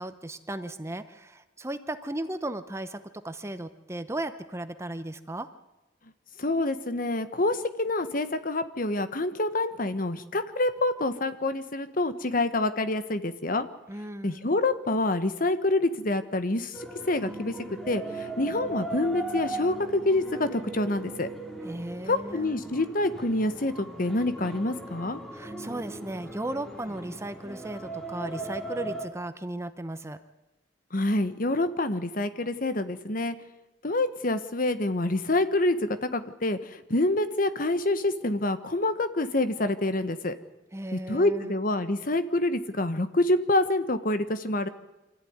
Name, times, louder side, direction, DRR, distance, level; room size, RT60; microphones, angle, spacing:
voice 1, 0.0-3.0 3.2-5.5 13.9-14.6 21.6-22.6 25.3-30.2 40.7-41.5, right 1 dB, 15° right, 10 dB, 0.8 m, -36 dB
voice 2, 6.4-13.7 14.2-17.5 17.9-21.3 22.1-25.2 30.9-33.3 33.8-40.3 40.9-44.7, left 2 dB, 50° left, 11 dB, 1.3 m, -27 dB
sound 1, 16.7-29.1, right 2 dB, ahead, 2.5 m, -38 dB
25.0 x 14.0 x 9.6 m, 1.0 s
head